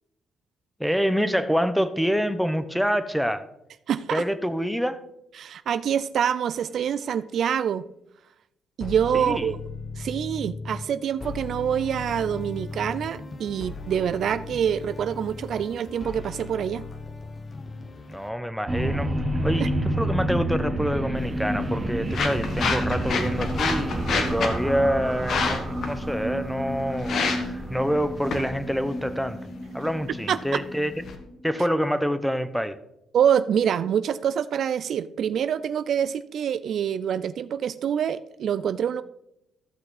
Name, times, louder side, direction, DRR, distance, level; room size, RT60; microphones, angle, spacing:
voice 1, 0.8-3.4 4.1-5.0 9.1-9.5 18.1-19.1 19.4-29.4 29.7-30.9 31.4-32.8, equal, ahead, 12 dB, 0.9 m, -26 dB
voice 2, 3.9-4.2 5.4-7.9 8.8-9.6 10.0-16.9 19.6-19.7 30.3-30.6 33.1-39.0, right 8 dB, 65° right, 13 dB, 0.4 m, -26 dB
sound 1, 6.5-6.8 8.8-10.9 11.2-18.3, left 3 dB, 35° left, 1.1 m, -37 dB
sound 2, 18.7-31.5, right 1 dB, 25° right, 1.4 m, -29 dB
sound 3, 21.2-31.1, left 4 dB, 65° left, 1.5 m, -31 dB
15.0 x 5.9 x 4.1 m, 0.82 s
cardioid pair, 90°, 0 cm